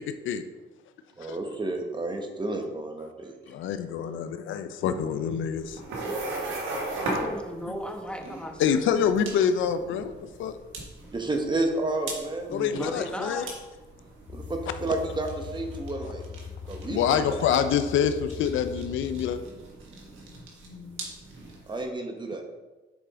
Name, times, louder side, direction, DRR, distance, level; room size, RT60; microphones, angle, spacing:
voice 1, 1.2-3.3 11.1-12.5 14.3-16.2 16.7-17.5 21.7-22.4, right 2 dB, 25° right, 3 dB, 1.1 m, -31 dB
voice 2, 3.5-5.8 8.6-10.1 10.4-10.6 12.5-13.4 16.9-19.4, left 8 dB, 80° left, 10 dB, 0.5 m, -26 dB
sound 1, 5.5-21.8, right 2 dB, 85° right, 1.6 m, -38 dB
voice 3, 6.9-8.8 11.0-11.2 12.5-13.5, equal, 5° left, 3 dB, 1.0 m, -37 dB
sound 2, 14.3-19.3, left 6 dB, 25° left, 0.8 m, -40 dB
7.0 x 5.0 x 3.7 m, 1.2 s
cardioid pair, 90°, 20 cm